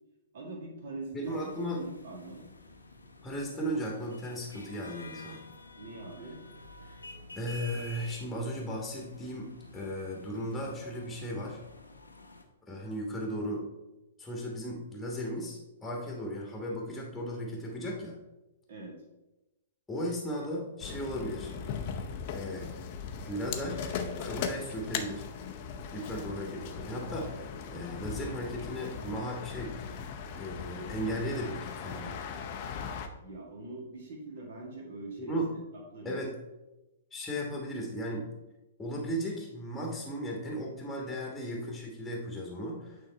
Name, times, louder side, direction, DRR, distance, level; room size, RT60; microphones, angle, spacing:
voice 1, 0.3-2.5 5.8-6.4 18.7-19.0 33.2-35.4 35.7-36.2, right 2 dB, 50° right, 0 dB, 1.8 m, -43 dB
voice 2, 1.1-1.8 3.2-5.4 6.9-7.0 7.3-11.6 12.7-13.6 14.2-18.2 19.9-21.5 22.3-22.7 23.2-23.8 24.2-25.2 25.9-27.3 27.7-30.0 30.4-32.2 35.2-35.5 36.0-36.3 37.1-38.3 38.8-43.0, equal, 5° left, -1 dB, 1.3 m, -36 dB
sound 1, 1.2-12.4, left 1 dB, 80° left, 0.8 m, -50 dB
sound 2, 20.8-33.1, left 6 dB, 40° left, 0.6 m, -39 dB
8.7 x 3.6 x 4.1 m, 1.0 s
figure-of-eight pair, 110°, 0 cm